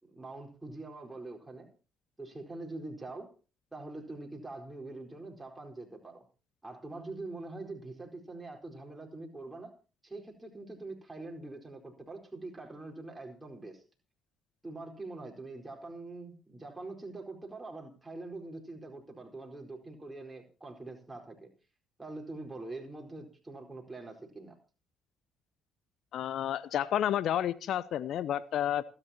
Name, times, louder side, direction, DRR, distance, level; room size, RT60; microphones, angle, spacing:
voice 1, 0.0-1.7 2.2-3.3 3.7-6.2 6.6-9.7 10.0-13.8 14.6-21.5 22.0-24.6, right 2 dB, 15° right, 1 dB, 4.4 m, -44 dB
voice 2, 26.1-28.8, left 11 dB, 55° left, 17 dB, 0.7 m, -30 dB
28.0 x 9.8 x 2.9 m, 0.34 s
figure-of-eight pair, 45°, 0 cm